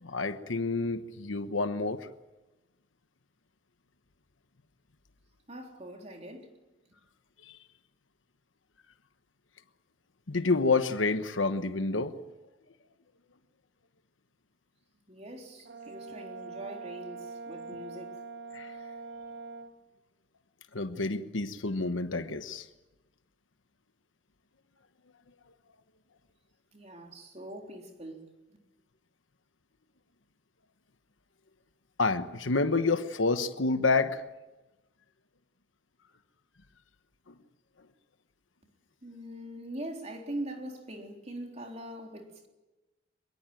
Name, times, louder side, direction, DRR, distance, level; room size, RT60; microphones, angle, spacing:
voice 1, 0.0-2.1 7.5-7.6 10.3-12.1 18.5-18.7 20.7-22.7 32.0-34.2, left 3 dB, 90° left, 1.1 m, -28 dB
voice 2, 5.5-6.5 15.1-18.2 26.7-28.3 39.0-42.5, right 1 dB, 35° right, 3.8 m, -42 dB
Brass instrument, 15.6-19.7, right 4 dB, 60° right, 1.4 m, -43 dB
23.0 x 22.5 x 9.1 m
head